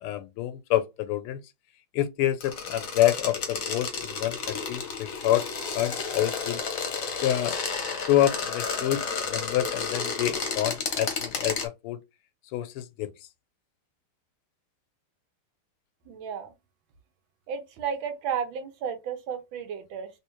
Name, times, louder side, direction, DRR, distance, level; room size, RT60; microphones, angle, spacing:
voice 1, 0.0-1.4 1.9-5.4 5.7-6.6 7.1-7.6 8.1-12.0 12.5-13.1, left 13 dB, 90° left, 1.5 m, -27 dB
sound 1, 2.4-11.7, left 5 dB, 50° left, 1.0 m, -32 dB
voice 2, 16.1-16.5 17.5-20.1, right 7 dB, 70° right, 1.4 m, -33 dB
3.3 x 3.1 x 3.0 m
omnidirectional pair, 2.4 m